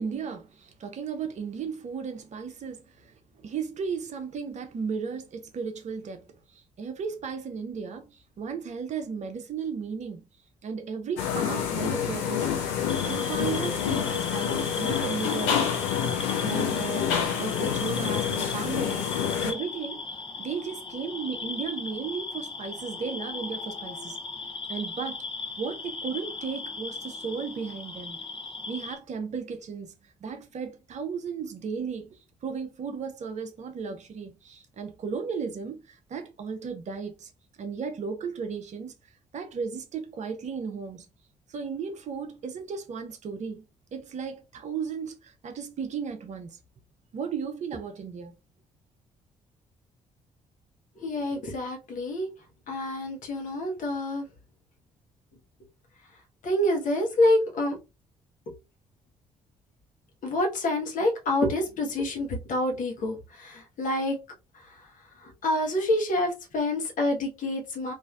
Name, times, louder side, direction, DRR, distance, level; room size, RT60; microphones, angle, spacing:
voice 1, 0.0-10.2 10.6-12.5 13.0-15.6 16.4-20.1 20.4-24.2 24.7-25.2 25.6-28.2 28.7-37.3 37.6-38.9 39.3-41.1 41.5-43.6 43.9-46.6 47.1-48.4, right 6 dB, 40° right, 0.6 m, -35 dB
sound 1, 11.2-19.5, left 8 dB, 70° left, 0.7 m, -28 dB
sound 2, 12.9-29.0, left 3 dB, 30° left, 0.9 m, -38 dB
voice 2, 51.0-52.3 52.7-54.2 56.4-57.8 60.2-64.2 65.2-67.9, left 1 dB, 50° left, 1.0 m, -27 dB
3.2 x 2.5 x 2.3 m
figure-of-eight pair, 45°, 17 cm